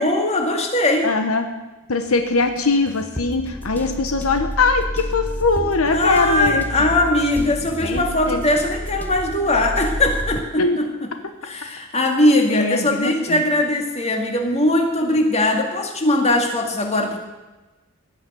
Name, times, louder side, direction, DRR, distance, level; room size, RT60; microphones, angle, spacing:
voice 1, 0.0-1.1 5.9-11.1 11.4-17.2, left 1 dB, 30° left, 2 dB, 2.0 m, -20 dB
voice 2, 1.0-1.4 1.9-6.6 7.8-8.4 10.6-10.8 12.5-13.4, left 3 dB, 80° left, 6 dB, 1.2 m, -21 dB
sound 1, 2.1-10.4, equal, 10° left, 0.9 m, -30 dB
16.0 x 6.5 x 9.3 m, 1.1 s
head